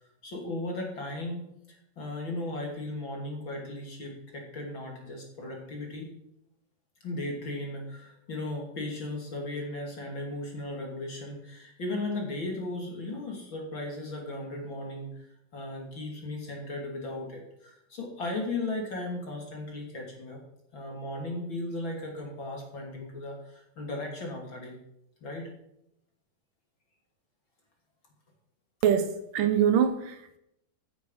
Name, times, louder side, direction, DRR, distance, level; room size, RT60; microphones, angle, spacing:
voice 1, 0.2-1.4 1.7-6.1 7.0-15.2 15.5-20.4 20.7-24.8 25.2-25.5, left 2 dB, 35° left, 0 dB, 3.0 m, -36 dB
voice 2, 28.8-30.4, right 8 dB, 75° right, 9 dB, 2.5 m, -24 dB
14.5 x 8.8 x 5.6 m, 0.79 s
omnidirectional pair, 4.1 m